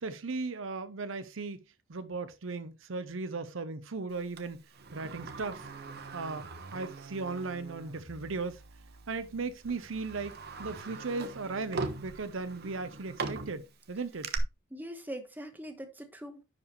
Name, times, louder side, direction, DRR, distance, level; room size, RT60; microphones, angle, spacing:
voice 1, 0.0-1.6 1.9-4.6 4.9-5.7 6.1-8.6 9.1-14.3, right 3 dB, 70° right, 0.7 m, -37 dB
Sliding door, 4.4-7.6 8.0-8.1 9.0-9.2 9.7-14.4, right 4 dB, 50° right, 1.0 m, -41 dB
sound 1, 5.6-12.4, right 3 dB, 85° right, 1.1 m, -50 dB
voice 2, 14.7-16.4, equal, 10° right, 1.2 m, -42 dB
10.5 x 4.8 x 3.2 m
head